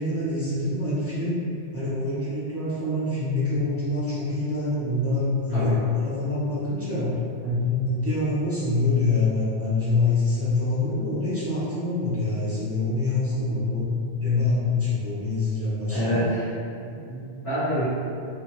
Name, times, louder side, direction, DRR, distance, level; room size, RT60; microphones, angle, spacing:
voice 1, 0.0-1.4 1.7-16.2, left 3 dB, 20° right, -10 dB, 0.4 m, -25 dB
voice 2, 15.9-16.5 16.9-17.8, right 1 dB, 70° left, -13 dB, 1.3 m, -27 dB
2.7 x 2.4 x 2.9 m, 2.5 s
omnidirectional pair, 1.1 m